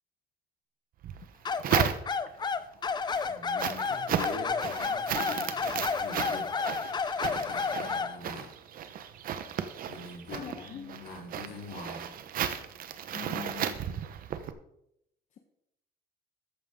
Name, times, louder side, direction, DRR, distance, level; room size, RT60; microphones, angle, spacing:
sound 1, 1.0-2.5 2.9-14.5, right 9 dB, 60° right, 1.0 m, -34 dB
sound 2, 1.4-8.2, left 5 dB, 25° left, 0.7 m, -31 dB
voice 1, 3.2-6.6 7.3-8.5 9.9-12.1, left 3 dB, 70° left, 0 dB, 3.8 m, -44 dB
voice 2, 10.3-10.9 13.1-13.9, left 7 dB, 45° left, 3 dB, 1.2 m, -42 dB
13.5 x 9.2 x 3.8 m, 0.77 s
cardioid pair, 135°, 17 cm